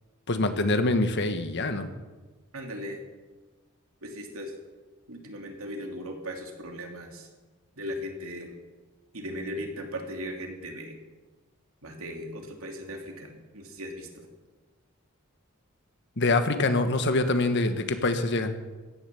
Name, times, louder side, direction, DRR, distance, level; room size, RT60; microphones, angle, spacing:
voice 1, 0.3-1.9 16.2-18.5, left 2 dB, 55° left, 8 dB, 1.4 m, -25 dB
voice 2, 2.5-3.0 4.0-4.5 5.1-7.3 7.8-8.5 9.1-11.0 11.8-14.3, equal, 75° right, 2 dB, 2.9 m, -38 dB
16.0 x 11.0 x 7.1 m, 1.3 s
head